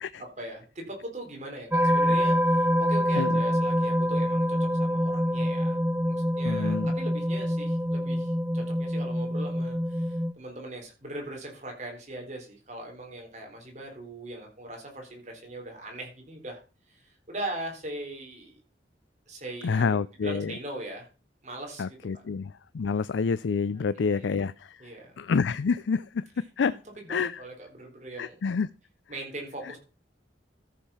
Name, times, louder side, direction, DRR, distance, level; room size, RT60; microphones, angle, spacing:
voice 1, 0.2-5.8 6.1-16.6 16.9-18.6 19.3-20.0 20.2-21.1 21.4-22.2 24.0-24.2 24.8-25.2 27.1-28.4 29.1-29.8, right 1 dB, 40° right, 4.0 m, -40 dB
sound 1, 1.7-10.3, equal, 10° right, 0.5 m, -25 dB
voice 2, 6.4-6.9 19.6-20.5 21.8-24.8 25.2-26.8 27.1-27.4 28.2-28.7, left 5 dB, 90° left, 0.4 m, -28 dB
13.5 x 6.5 x 5.7 m
head